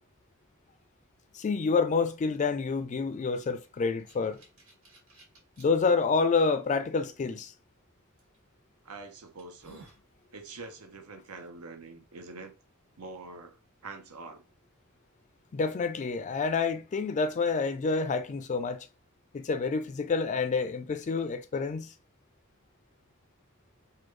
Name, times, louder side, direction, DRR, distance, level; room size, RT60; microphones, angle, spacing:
voice 1, 1.3-4.4 5.6-7.5 15.5-18.9 19.3-21.9, left 4 dB, 35° left, 0.3 m, -28 dB
sound 1, 3.6-5.7 6.4-6.5 8.2-8.4 8.9-9.0 9.4-10.0, right 2 dB, 70° right, 1.6 m, -55 dB
voice 2, 8.8-9.9 10.3-12.5 13.0-13.6 13.8-14.4, right 3 dB, 85° right, 0.7 m, -45 dB
3.5 x 2.2 x 3.1 m
head